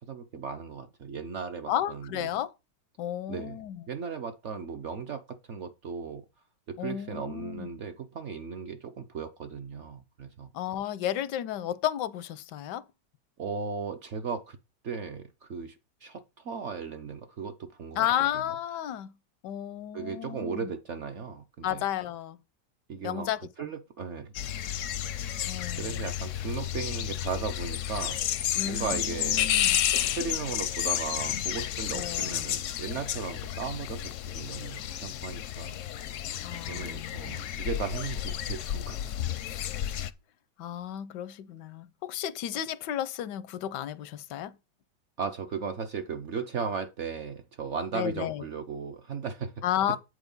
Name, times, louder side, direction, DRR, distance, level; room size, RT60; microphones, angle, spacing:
voice 1, 0.1-2.3 3.3-3.6 3.9-6.3 6.7-10.5 13.4-14.6 14.8-18.1 19.9-21.8 22.9-23.3 23.6-24.3 25.8-28.2 28.6-35.8 36.5-39.3 45.2-49.6, right 5 dB, 55° right, 0.8 m, -36 dB
voice 2, 1.7-2.5 3.0-3.8 6.8-7.7 10.5-12.8 17.9-19.1 19.4-20.7 21.6-22.4 23.0-23.7 25.5-26.0 28.5-29.8 31.9-32.5 36.4-37.3 40.6-44.6 47.9-48.4 49.6-50.0, left 11 dB, 85° left, 1.3 m, -33 dB
sound 1, 24.3-40.1, left 11 dB, 70° left, 0.7 m, -31 dB
8.6 x 4.8 x 5.3 m
omnidirectional pair, 1.8 m